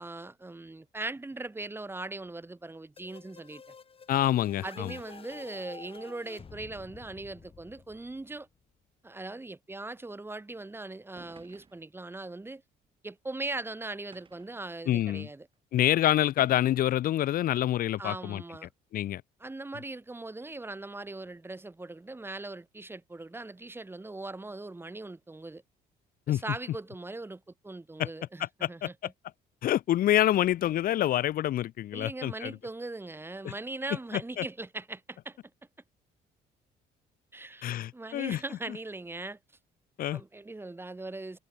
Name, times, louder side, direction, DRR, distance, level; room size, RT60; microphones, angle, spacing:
voice 1, 0.0-3.6 4.6-8.5 9.0-12.6 13.0-15.5 18.0-18.7 19.4-25.6 26.3-29.1 31.9-35.4 37.3-37.6 37.9-39.4 40.1-41.4, right 2 dB, 15° right, 6.7 m, -40 dB
sound 1, 3.0-8.6, left 6 dB, 35° left, 7.5 m, -50 dB
voice 2, 4.1-4.9 14.9-15.3 15.7-18.4 18.9-19.2 26.3-26.4 28.0-28.1 28.4-28.9 29.6-32.6 33.4-33.5 34.1-34.4 37.6-38.4 40.0-40.2, left 13 dB, 60° left, 0.8 m, -27 dB
sound 2, 11.2-11.9 12.8-12.9 14.1-14.6 15.5-15.6 16.4-17.1, right 5 dB, 30° right, 6.8 m, -54 dB
cardioid pair, 110°, 17 cm